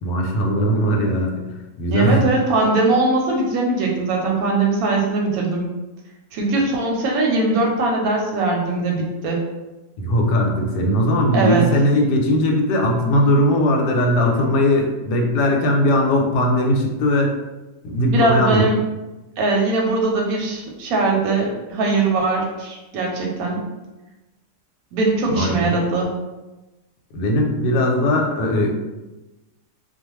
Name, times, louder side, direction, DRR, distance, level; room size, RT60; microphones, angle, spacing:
voice 1, 0.0-1.4 1.8-2.3 10.0-17.3 17.8-18.6 25.3-25.7 27.1-28.7, left 1 dB, 90° left, 1 dB, 1.2 m, -19 dB
voice 2, 1.9-5.7 6.3-9.4 11.3-11.7 18.1-18.8 19.4-23.6 24.9-26.1, right 3 dB, 70° right, -1 dB, 1.0 m, -20 dB
2.3 x 2.3 x 3.0 m, 1.1 s
omnidirectional pair, 1.7 m